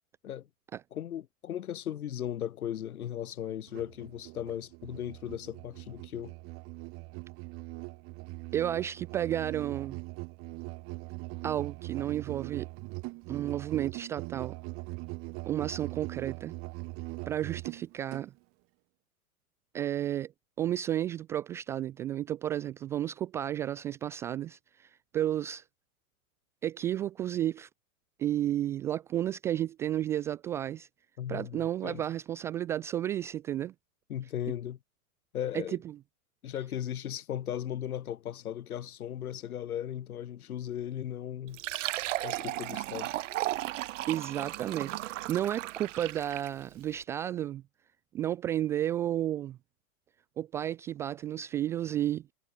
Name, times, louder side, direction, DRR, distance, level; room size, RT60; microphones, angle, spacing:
voice 1, 0.9-6.3 31.2-32.0 34.1-34.8 35.3-35.8 36.4-41.6 42.2-43.1, left 10 dB, 80° left, 6.8 m, -37 dB
Musical instrument, 3.7-18.3, right 27 dB, 30° right, 1.3 m, -41 dB
voice 2, 8.5-10.0 11.4-12.7 13.3-14.6 15.5-16.6 17.3-18.3 19.7-20.3 20.6-25.6 26.6-27.7 28.2-30.9 31.3-33.7 35.5-36.0 44.1-47.6 48.1-49.6 50.4-52.2, right 11 dB, 5° right, 0.3 m, -32 dB
Fill (with liquid), 41.5-46.6, right 15 dB, 60° right, 2.0 m, -35 dB
hypercardioid pair, 145°, 43 cm